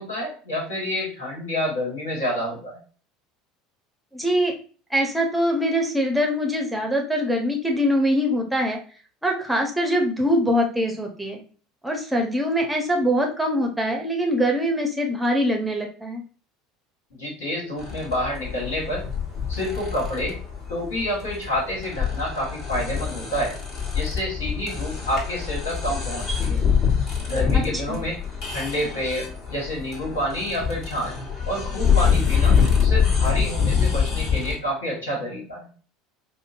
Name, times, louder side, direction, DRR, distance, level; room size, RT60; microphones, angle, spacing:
voice 1, 0.0-2.8 17.2-19.0 19.5-20.4 20.7-23.5 23.9-26.6 27.2-28.2 28.5-31.1 31.4-32.5 32.8-35.7, equal, 70° left, -3 dB, 1.5 m, -28 dB
voice 2, 4.1-4.5 4.9-8.8 9.2-11.4 11.8-16.2 27.5-28.0, equal, 5° right, 1 dB, 0.7 m, -23 dB
sound 1, 17.8-34.5, left 6 dB, 40° left, 1.3 m, -25 dB
5.1 x 2.1 x 2.5 m, 0.39 s
figure-of-eight pair, 70°, 0 cm